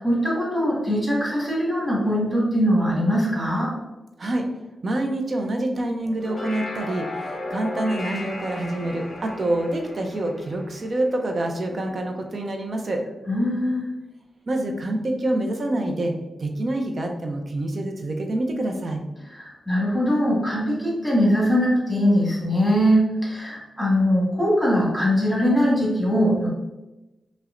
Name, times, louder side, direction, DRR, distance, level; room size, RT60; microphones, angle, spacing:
voice 1, 0.0-3.7 13.3-13.9 19.3-26.5, equal, ahead, -5 dB, 1.4 m, -21 dB
voice 2, 4.8-13.0 14.5-16.1 16.4-19.0, right 1 dB, 40° right, 3 dB, 0.5 m, -26 dB
sound 1, 6.0-11.6, left 2 dB, 20° left, 0.9 m, -35 dB
5.5 x 2.1 x 2.5 m, 1.0 s
wide cardioid pair, 145°, 0 cm